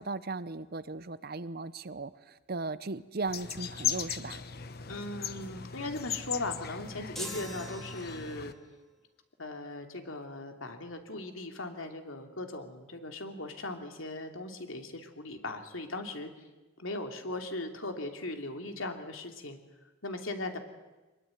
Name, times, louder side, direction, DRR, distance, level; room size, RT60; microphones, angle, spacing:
voice 1, 0.0-4.4, right 3 dB, 50° right, 16 dB, 0.8 m, -37 dB
sound 1, 3.3-8.5, left 8 dB, 50° left, 1.1 m, -38 dB
voice 2, 4.9-8.5 9.4-16.3 16.8-19.6 20.0-20.6, left 2 dB, 80° left, 5 dB, 2.9 m, -38 dB
sound 2, 7.2-8.6, equal, ahead, 2.8 m, -43 dB
24.0 x 21.5 x 9.2 m, 1.1 s
head